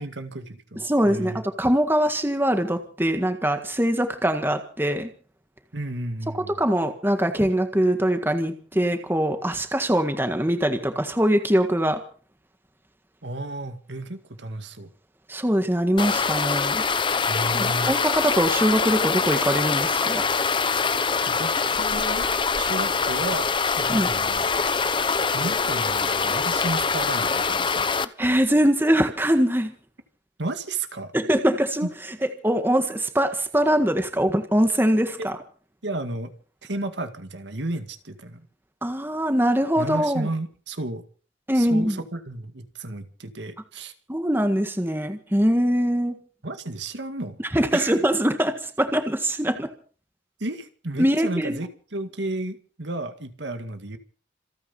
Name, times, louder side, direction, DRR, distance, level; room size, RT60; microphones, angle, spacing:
voice 1, 0.0-1.4 5.7-6.6 13.2-14.9 17.3-17.9 21.3-22.3 22.6-24.5 25.3-27.9 30.4-31.1 31.8-31.9 35.2-35.3 35.8-36.3 36.6-38.5 39.8-41.0 41.5-43.9 46.4-47.4 47.7-48.0 50.4-54.0, right 2 dB, 70° right, 8 dB, 2.0 m, -33 dB
voice 2, 0.8-1.3 1.6-5.1 6.6-12.0 15.3-16.8 17.5-20.3 23.9-24.1 28.2-29.7 31.1-31.9 32.4-35.4 38.8-40.3 41.5-42.0 44.1-46.2 47.5-49.7 51.0-51.6, equal, 10° right, 7 dB, 1.7 m, -22 dB
sound 1, 16.0-28.1, left 5 dB, 25° left, 0.8 m, -24 dB
27.5 x 9.5 x 5.5 m, 0.41 s
head